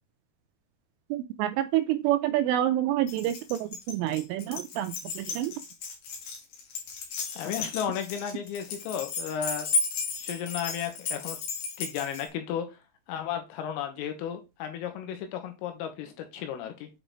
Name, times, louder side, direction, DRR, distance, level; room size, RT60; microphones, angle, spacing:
voice 1, 1.1-5.6, right 13 dB, 85° right, 2.9 m, -28 dB
Keys jangling, 3.1-12.3, left 4 dB, 60° left, 3.2 m, -34 dB
voice 2, 7.3-9.7 10.2-11.4 11.8-12.7 13.1-16.9, left 9 dB, 80° left, 3.7 m, -34 dB
8.2 x 5.2 x 3.0 m
omnidirectional pair, 6.0 m